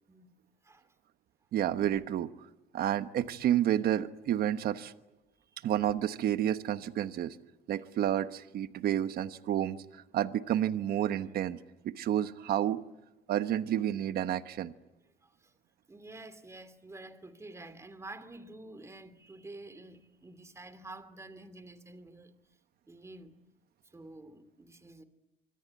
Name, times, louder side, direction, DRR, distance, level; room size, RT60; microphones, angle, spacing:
voice 1, 1.5-2.3 2.7-4.9 5.6-7.4 7.7-11.6 11.8-12.8 13.3-14.7, right 11 dB, 65° right, 1.2 m, -30 dB
voice 2, 15.2-15.6 15.9-22.3 22.9-23.4 23.9-25.0, right 2 dB, 15° right, 2.8 m, -49 dB
25.0 x 25.0 x 9.4 m
cardioid pair, 110°, 17 cm